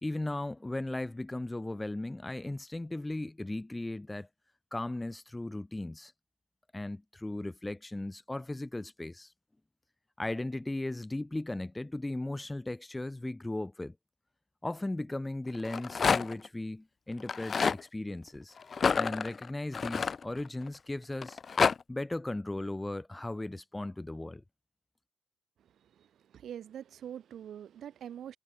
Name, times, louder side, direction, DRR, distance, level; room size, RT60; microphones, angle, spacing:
voice 1, 0.0-4.3 4.7-6.1 6.7-9.3 10.2-13.9 14.6-18.5 19.0-21.4 21.9-24.4, left 2 dB, 10° left, 0.8 m, -37 dB
Rattle, 15.6-16.5 17.2-17.8 18.7-20.7 21.2-21.7, left 5 dB, 40° left, 0.4 m, -28 dB
voice 2, 25.6-28.4, right 9 dB, 65° right, 4.8 m, -45 dB
cardioid pair, 90°, 0 cm